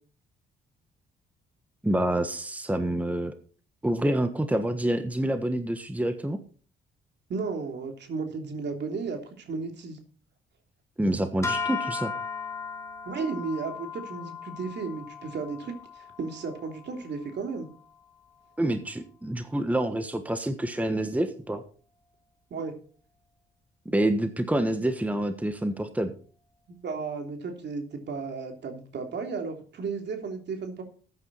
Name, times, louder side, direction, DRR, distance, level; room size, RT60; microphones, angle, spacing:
voice 1, 1.8-3.3 3.8-6.4 11.0-12.1 18.6-21.6 23.8-26.1, right 1 dB, 5° right, 8 dB, 1.3 m, -27 dB
voice 2, 7.3-10.0 13.0-17.7 22.5-22.7 26.7-30.8, right 4 dB, 60° right, 4 dB, 3.1 m, -34 dB
sound 1, 11.4-17.8, left 5 dB, 15° left, 1.9 m, -37 dB
14.0 x 9.4 x 4.2 m, 0.40 s
cardioid pair, 90°, 20 cm